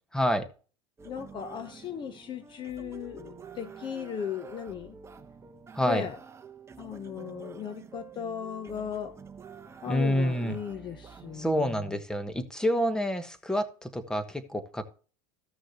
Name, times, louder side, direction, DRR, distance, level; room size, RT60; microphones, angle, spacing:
voice 1, 0.1-0.5 5.7-6.1 9.9-10.6 11.3-14.8, equal, 5° left, 1.2 m, -28 dB
voice 2, 1.0-5.0 5.8-6.2 6.8-9.1 9.8-11.7, left 8 dB, 35° left, 0.8 m, -37 dB
sound 1, 1.0-11.6, right 6 dB, 20° right, 1.0 m, -48 dB
15.0 x 6.2 x 2.9 m
supercardioid pair, 120°, 14 cm